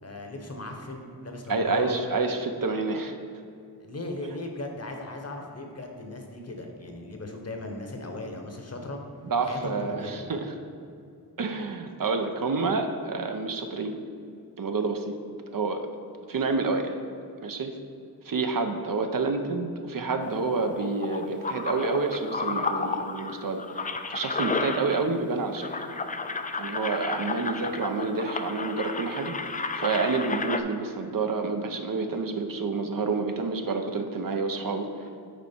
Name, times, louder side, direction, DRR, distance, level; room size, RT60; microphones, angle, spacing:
voice 1, 0.0-2.0 3.8-9.0 9.4-10.2, left 2 dB, 40° left, 3 dB, 0.9 m, -37 dB
voice 2, 1.5-3.1 9.2-10.5 11.4-14.0 14.6-15.2 15.5-15.8 16.3-16.9 17.4-17.7 18.2-25.7 26.6-29.3 29.8-35.1, right 3 dB, 60° right, 5 dB, 0.6 m, -28 dB
sound 1, 20.2-25.3 25.5-30.6, left 4 dB, 25° left, 0.3 m, -32 dB
6.8 x 4.6 x 4.4 m, 2.4 s
wide cardioid pair, 65°, 39 cm